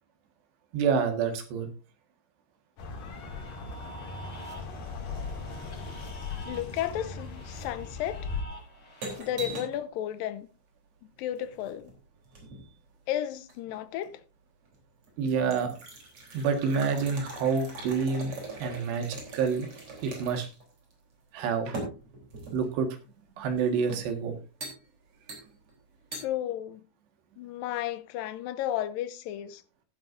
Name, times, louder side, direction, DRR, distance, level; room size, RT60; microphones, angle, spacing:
voice 1, 0.7-1.7 15.2-15.8 16.3-18.3 18.6-19.7 20.0-20.5 21.3-21.8 22.5-22.9 23.4-24.4, right 5 dB, 80° right, 3.8 m, -28 dB
sound 1, 2.8-8.4, left 4 dB, 60° left, 4.0 m, -38 dB
sound 2, 3.0-9.2, right 1 dB, 30° left, 7.2 m, -49 dB
voice 2, 6.5-8.3 9.2-10.5 11.2-11.9 13.1-14.2 26.1-26.8 27.4-29.6, left 12 dB, 80° left, 2.1 m, -33 dB
sound 3, 8.3-9.9 11.3-12.7 13.5-14.1 14.7-14.8 15.0-20.6 20.9-21.0 21.7-22.8 23.6-24.1 24.6-24.8 25.3-25.7 26.1-26.3, right 2 dB, 35° right, 4.3 m, -41 dB
15.0 x 11.0 x 2.6 m
omnidirectional pair, 4.7 m